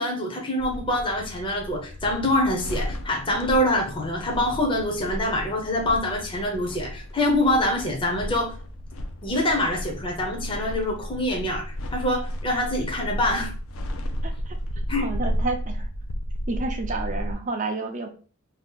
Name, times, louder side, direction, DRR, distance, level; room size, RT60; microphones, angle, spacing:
voice 1, 0.0-8.5 9.2-13.5 14.9-15.1, left 1 dB, 25° left, 0 dB, 0.6 m, -25 dB
sound 1, 0.6-17.3, equal, 80° left, 0.5 m, -33 dB
voice 2, 14.2-14.6 15.0-15.9 16.5-18.1, right 3 dB, 35° right, 4 dB, 0.5 m, -30 dB
2.7 x 2.4 x 3.6 m, 0.40 s
head